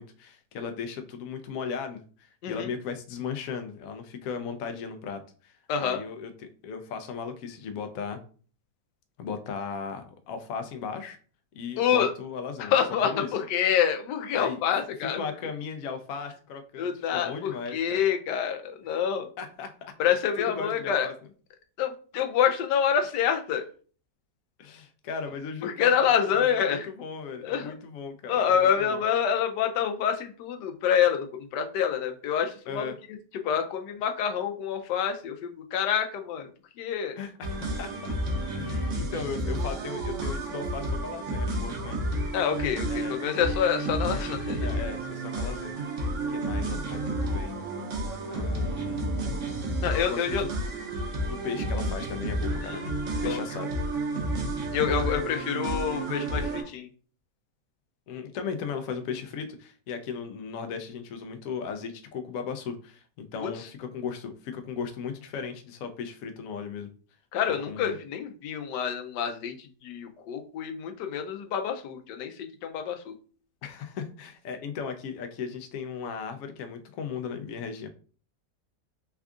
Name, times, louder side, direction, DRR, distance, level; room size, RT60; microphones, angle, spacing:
voice 1, 0.0-8.2 9.2-11.2 11.5-12.7 13.0-13.3 14.3-14.6 15.2-18.0 19.4-19.9 20.5-21.1 24.6-29.0 32.7-33.0 37.2-38.1 38.5-42.0 42.9-43.2 44.6-45.8 46.3-47.6 48.2-49.0 50.0-50.5 51.3-52.9 53.2-53.8 58.1-66.9 67.7-68.0 73.6-77.9, left 6 dB, 70° left, 7 dB, 0.9 m, -37 dB
voice 2, 5.7-6.0 11.8-12.1 12.6-15.2 16.8-19.3 20.0-21.1 21.8-23.7 25.6-26.9 27.4-27.7 28.3-32.9 33.3-36.5 36.8-37.2 42.3-44.7 49.8-50.5 52.6-53.4 54.7-56.9 63.4-63.6 67.3-73.2, left 8 dB, 85° left, 5 dB, 1.2 m, -27 dB
sound 1, 37.4-56.6, right 1 dB, 55° right, 1.0 m, -31 dB
3.5 x 2.3 x 3.5 m, 0.40 s
omnidirectional pair, 1.8 m